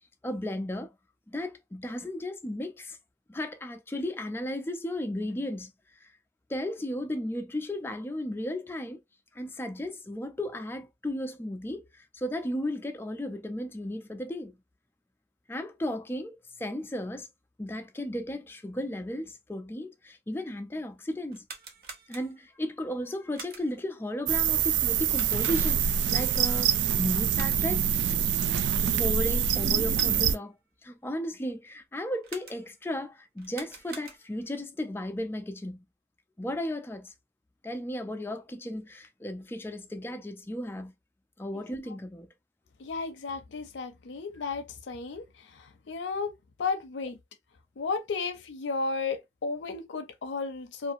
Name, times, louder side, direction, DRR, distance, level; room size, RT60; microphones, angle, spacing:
voice 1, 0.2-0.9 1.3-3.0 3.3-5.7 6.0-6.1 6.5-9.0 9.3-14.6 15.5-17.3 17.6-21.4 22.1-27.9 28.8-30.6 30.8-35.8 36.4-37.1 37.6-40.9 41.4-42.3, left 1 dB, 15° left, 0.3 m, -35 dB
sound 1, 21.3-22.6 23.3-23.9 25.1-26.0 27.3-27.9 29.7-30.5 32.2-32.9 33.4-34.5, right 4 dB, 55° right, 0.7 m, -46 dB
sound 2, 24.3-30.4, right 8 dB, 80° right, 0.3 m, -25 dB
voice 2, 42.8-45.2 45.9-46.3 46.6-47.2 47.8-50.9, left 4 dB, 85° left, 0.5 m, -33 dB
2.6 x 2.4 x 2.5 m
head